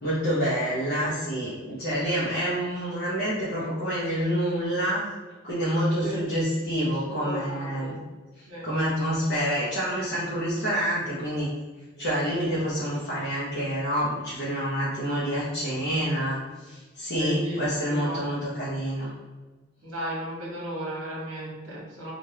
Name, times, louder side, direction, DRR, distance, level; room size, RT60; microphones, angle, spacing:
voice 1, 0.0-5.0 5.4-8.0 8.6-11.5 12.0-19.1, equal, 45° left, -9 dB, 0.7 m, -27 dB
voice 2, 7.1-8.0 8.5-8.7 17.1-17.6 17.9-18.2 19.8-22.1, equal, 65° right, -4 dB, 1.1 m, -35 dB
3.2 x 2.5 x 2.8 m, 1.3 s
head